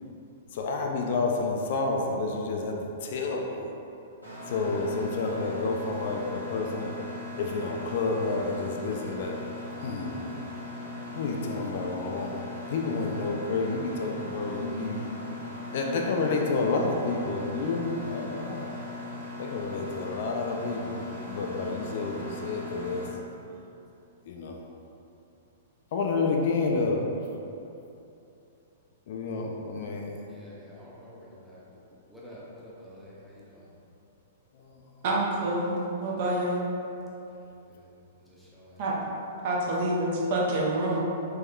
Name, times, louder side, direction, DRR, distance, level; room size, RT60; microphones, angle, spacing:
voice 1, 0.5-3.7 4.5-7.0 7.4-9.4 9.8-10.3 11.1-12.3 12.7-15.1 15.7-18.7 19.4-23.1 24.2-24.6 25.9-27.1 29.1-30.2 34.5-34.8, left 3 dB, 50° left, 1 dB, 0.3 m, -30 dB
Mechanisms, 4.2-23.1, left 2 dB, 90° right, 1.0 m, -39 dB
voice 2, 30.3-31.8 32.1-33.7 37.7-38.9, equal, ahead, -8 dB, 0.7 m, -49 dB
voice 3, 35.0-36.6 38.8-38.9 39.4-41.0, right 1 dB, 50° right, -4 dB, 0.6 m, -27 dB
3.5 x 3.0 x 2.3 m, 2.8 s
figure-of-eight pair, 105°, 0 cm